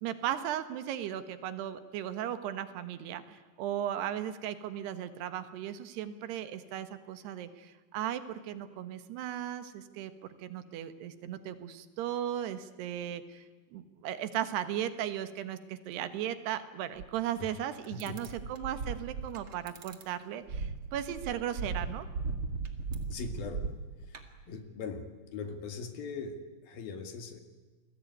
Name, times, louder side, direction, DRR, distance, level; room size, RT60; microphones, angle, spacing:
voice 1, 0.0-10.1 10.4-13.5 13.7-22.1, right 11 dB, 85° right, 11 dB, 3.5 m, -36 dB
sound 1, 17.0-17.2 17.8-20.0 20.5-24.4, right 4 dB, 40° right, 2.2 m, -37 dB
voice 2, 23.1-23.7 24.1-24.2 24.5-25.1 25.3-27.4, left 5 dB, 65° left, 7 dB, 3.9 m, -40 dB
29.5 x 21.0 x 9.5 m, 1.3 s
omnidirectional pair, 4.6 m